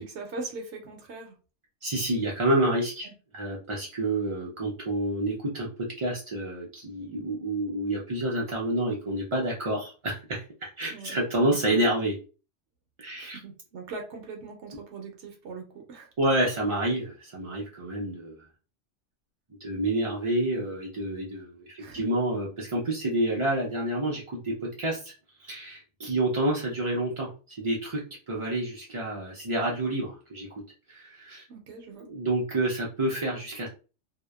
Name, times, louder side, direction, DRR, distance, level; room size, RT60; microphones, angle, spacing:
voice 1, 0.0-1.4 3.0-3.1 10.9-11.6 13.2-16.1 21.8-22.0 31.5-32.1, right 3 dB, 75° right, 2 dB, 0.9 m, -41 dB
voice 2, 1.8-3.1 3.3-12.2 13.0-13.4 16.2-18.3 19.6-25.1 25.4-30.6 30.9-31.4 32.0-33.7, right 1 dB, 50° right, -3 dB, 0.3 m, -28 dB
2.7 x 2.0 x 2.2 m, 0.34 s
omnidirectional pair, 1.2 m